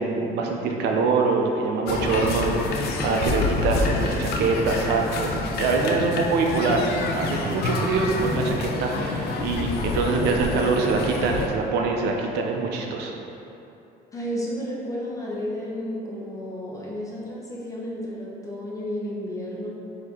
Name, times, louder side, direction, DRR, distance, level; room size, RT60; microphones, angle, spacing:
voice 1, 0.0-6.9 7.1-13.1, right 4 dB, 80° right, 1 dB, 0.5 m, -24 dB
sound 1, 1.9-11.5, left 3 dB, 70° left, 0.5 m, -27 dB
voice 2, 14.1-19.7, equal, 20° left, -5 dB, 0.9 m, -32 dB
4.3 x 2.8 x 3.5 m, 2.8 s
cardioid pair, 110°, 17 cm